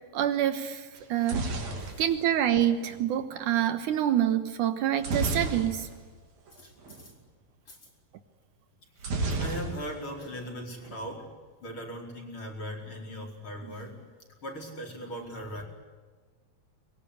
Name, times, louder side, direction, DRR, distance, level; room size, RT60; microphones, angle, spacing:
voice 1, 0.1-1.5 2.0-5.9, right 11 dB, 70° right, 10 dB, 2.5 m, -26 dB
sound 1, 1.0-3.1 5.0-6.2 6.5-6.6 6.8-7.1 9.0-10.2 10.5-11.1, right 3 dB, 50° right, 4.3 m, -32 dB
voice 2, 6.5-7.1 7.7-7.8 9.4-11.3 11.6-14.1 14.4-15.6, equal, 35° left, 1 dB, 5.5 m, -39 dB
24.0 x 22.5 x 9.9 m, 1.4 s
omnidirectional pair, 3.9 m